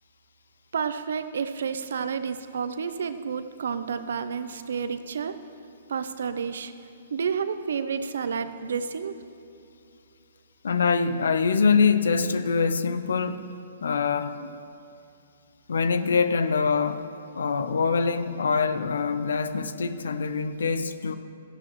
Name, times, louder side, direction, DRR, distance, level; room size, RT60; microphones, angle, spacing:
voice 1, 0.7-5.4 5.9-6.7 7.1-9.1, right 6 dB, 75° right, 11 dB, 0.6 m, -30 dB
voice 2, 10.6-14.5 15.7-17.1 17.3-21.2, left 5 dB, 80° left, 12 dB, 0.5 m, -24 dB
14.0 x 10.5 x 3.1 m, 2.7 s
hypercardioid pair, 130°, 0 cm